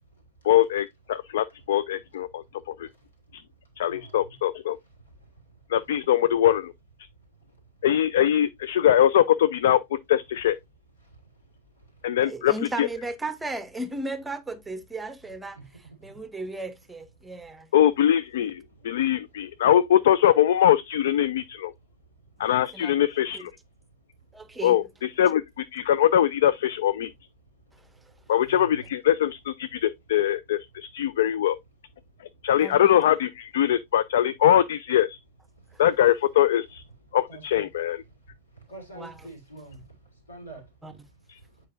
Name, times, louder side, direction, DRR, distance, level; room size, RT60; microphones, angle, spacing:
voice 1, 0.4-2.9 3.3-3.4 3.8-4.8 5.7-6.7 7.8-10.6 12.0-12.5 12.8-12.9 17.7-21.7 22.4-23.5 24.6-27.1 28.3-31.6 32.4-35.2 35.8-36.8 37.1-38.0, left 11 dB, 60° left, 0.3 m, -22 dB
voice 2, 12.2-15.6 16.0-17.7 22.5-22.9 23.3-23.4 24.3-24.8 32.6-32.8 38.9-39.2 40.8-40.9, right 2 dB, 10° right, 0.7 m, -35 dB
voice 3, 15.6-15.9 28.4-28.8 37.3-37.7 38.7-39.8 40.3-40.6, right 2 dB, 75° left, 2.6 m, -44 dB
8.2 x 4.6 x 2.6 m
figure-of-eight pair, 90°, 0 cm